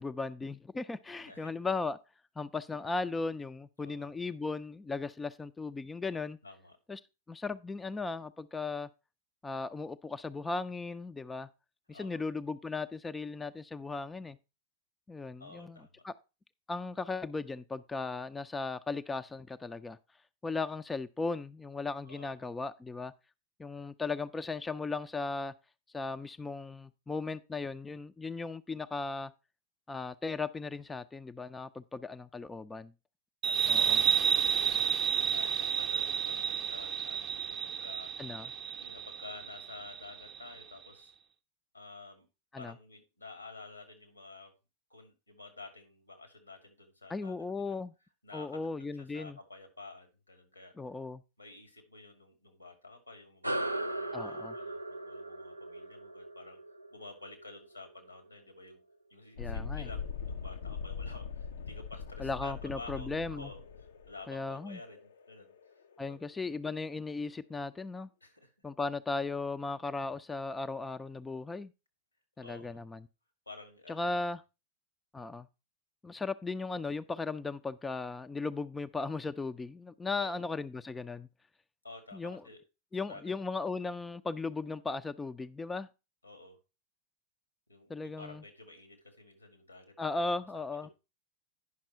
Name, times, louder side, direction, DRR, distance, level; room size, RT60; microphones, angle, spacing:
voice 1, 0.0-2.0 2.4-6.4 6.9-7.0 7.3-8.9 9.4-11.5 11.9-14.4 15.1-15.8 16.0-16.1 16.7-20.0 20.4-23.1 23.6-25.5 25.9-29.3 29.9-32.9 33.7-34.0 38.2-38.5 42.5-42.7 47.1-47.9 48.3-49.4 50.8-51.2 54.1-54.6 59.4-59.9 62.2-63.5 64.3-64.8 66.0-68.1 68.6-71.7 72.4-73.1 73.9-74.4 75.1-75.5 76.0-81.3 82.1-82.4 82.9-85.9 87.9-88.4 90.0-90.9, left 3 dB, 10° left, 0.4 m, -37 dB
voice 2, 3.8-4.1 6.4-6.8 11.9-12.2 15.4-16.0 22.0-22.3 33.4-34.8 35.3-38.1 38.8-41.1 41.7-42.3 42.6-44.5 44.9-47.8 48.2-50.7 51.4-56.6 56.9-58.8 59.1-65.0 65.3-66.2 68.2-68.5 72.4-72.8 73.5-74.3 80.1-80.4 81.8-82.6 83.1-83.2 86.2-86.6 87.7-90.9, left 3 dB, 85° left, 2.4 m, -51 dB
sound 1, 33.4-40.6, right 7 dB, 30° right, 0.6 m, -31 dB
sound 2, 53.4-58.3, right 1 dB, 85° right, 0.5 m, -38 dB
Thunderstorm, 59.4-66.8, left 5 dB, 65° left, 0.6 m, -42 dB
9.6 x 5.9 x 4.5 m
figure-of-eight pair, 90°, 0 cm